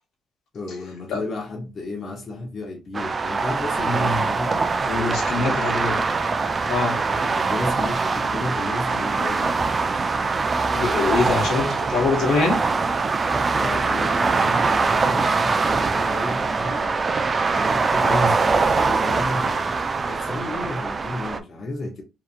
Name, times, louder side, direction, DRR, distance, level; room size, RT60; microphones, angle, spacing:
voice 1, 0.5-6.1 6.9-9.6 13.5-17.0 17.5-22.0, left 2 dB, 45° left, 0.8 m, -33 dB
sound 1, 2.9-21.4, right 4 dB, 35° right, 0.4 m, -23 dB
voice 2, 3.8-4.2 4.9-6.0 6.7-7.0 10.7-12.6 18.1-18.3, left 3 dB, 70° left, 0.9 m, -24 dB
2.8 x 2.4 x 2.4 m
cardioid pair, 90°, 0 cm